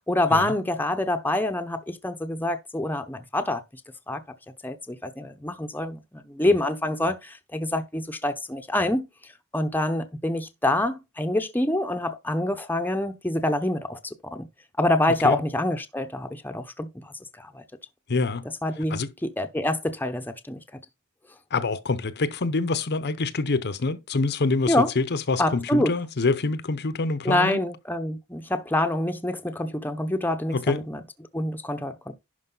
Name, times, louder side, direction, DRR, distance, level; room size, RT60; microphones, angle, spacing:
voice 1, 0.1-3.6 4.1-4.2 4.6-9.1 9.5-14.5 14.8-16.9 17.4-17.6 18.6-20.6 24.7-24.9 25.4-25.9 27.2-31.0 31.3-32.1, left 1 dB, 10° left, 0.8 m, -26 dB
voice 2, 18.1-18.5 18.9-19.1 21.5-27.6 30.5-30.8, left 3 dB, 50° left, 0.8 m, -26 dB
11.0 x 5.0 x 3.9 m
head